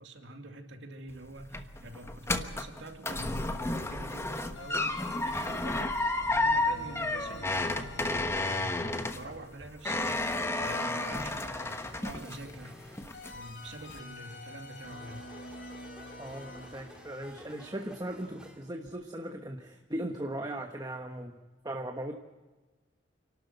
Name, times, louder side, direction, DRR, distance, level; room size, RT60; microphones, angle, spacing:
voice 1, 0.0-6.0 6.3-12.8 13.3-15.3, right 1 dB, 75° right, 4 dB, 2.5 m, -45 dB
sound 1, 1.1-12.7 13.0-13.5 13.9-14.0, left 2 dB, 15° left, 1.2 m, -32 dB
sound 2, 4.5-10.5 13.1-18.9, left 3 dB, 70° left, 2.2 m, -48 dB
sound 3, 10.4-18.7, equal, 5° right, 2.4 m, -53 dB
voice 2, 16.2-21.4 21.6-22.1, right 1 dB, 20° right, 4 dB, 1.2 m, -38 dB
28.0 x 12.5 x 8.1 m, 1.2 s
head